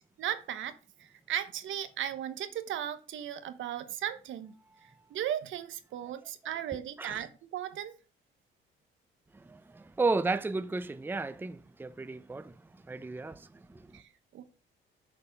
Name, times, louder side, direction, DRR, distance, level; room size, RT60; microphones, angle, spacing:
voice 1, 0.2-4.5 4.8-7.9 13.9-14.4, right 10 dB, 75° right, 1.0 m, -37 dB
voice 2, 9.3-14.0, right 3 dB, 10° right, 0.5 m, -34 dB
6.9 x 4.3 x 6.6 m
cardioid pair, 90°, 20 cm